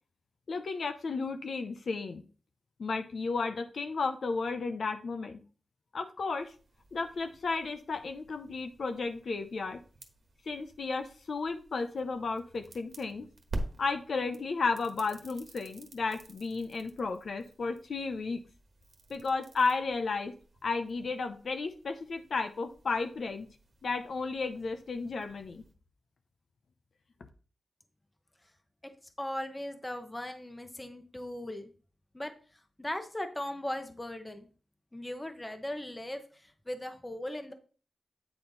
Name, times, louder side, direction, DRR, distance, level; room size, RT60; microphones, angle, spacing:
voice 1, 0.5-2.2 2.8-5.4 5.9-6.5 6.9-9.8 10.5-13.3 13.8-18.4 19.1-20.3 20.6-23.5 23.8-25.6, left 4 dB, 70° left, 8 dB, 0.7 m, -33 dB
sound 1, 6.4-25.7, right 1 dB, 80° right, 1.3 m, -48 dB
voice 2, 29.2-31.7 32.1-32.3 32.8-34.5 34.9-36.2 36.7-37.5, left 1 dB, 15° left, 7 dB, 0.9 m, -38 dB
8.9 x 4.4 x 4.0 m, 0.38 s
wide cardioid pair, 135°, 0 cm